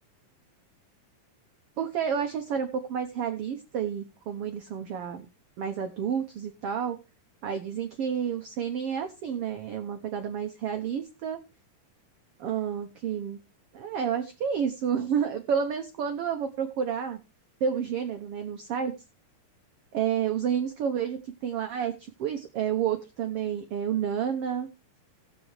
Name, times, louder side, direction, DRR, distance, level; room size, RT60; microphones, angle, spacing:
voice 1, 1.8-5.3 5.6-7.0 7.4-11.4 12.4-13.4 13.7-17.2 17.6-18.9 19.9-21.9 22.2-24.7, right 8 dB, 85° right, 6 dB, 1.2 m, -30 dB
18.0 x 7.7 x 3.1 m, 0.27 s
omnidirectional pair, 3.9 m